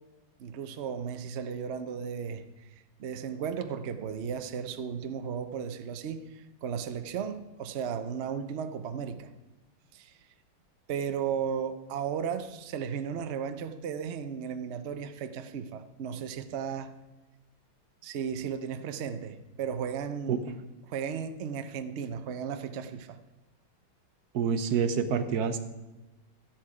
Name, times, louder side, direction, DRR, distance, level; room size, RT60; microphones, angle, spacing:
voice 1, 0.4-2.4 2.7-9.3 9.9-10.1 10.9-16.9 18.0-20.4 20.9-23.2, right 7 dB, 80° right, 0.6 m, -35 dB
voice 2, 24.3-25.6, right 6 dB, 60° right, 1.2 m, -27 dB
13.5 x 10.5 x 4.8 m
omnidirectional pair, 2.2 m